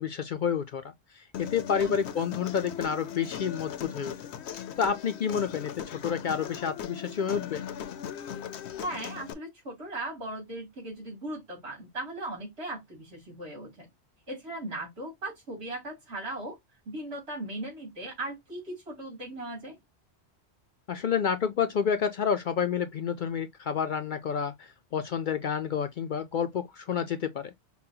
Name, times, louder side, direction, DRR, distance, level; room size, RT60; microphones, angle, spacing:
voice 1, 0.0-4.1 4.8-7.7 20.9-27.5, left 7 dB, 60° left, 0.6 m, -29 dB
Human voice, 1.3-9.3, left 9 dB, 80° left, 0.9 m, -39 dB
voice 2, 8.8-13.9 14.3-16.6 16.9-19.8, right 1 dB, 70° right, 3.1 m, -38 dB
5.6 x 2.2 x 2.7 m
omnidirectional pair, 1.1 m